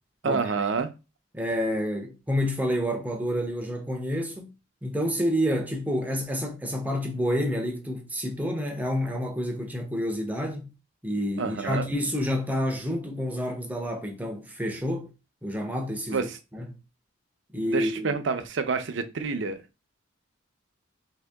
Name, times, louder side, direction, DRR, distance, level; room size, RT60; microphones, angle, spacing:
voice 1, 0.2-0.9 11.4-11.9 16.1-16.4 17.7-19.6, right 5 dB, 60° right, 0.5 m, -28 dB
voice 2, 1.3-4.5 4.8-10.7 11.0-15.1 15.4-16.8 17.5-18.2, equal, 10° right, 0.5 m, -29 dB
2.9 x 2.7 x 3.4 m
head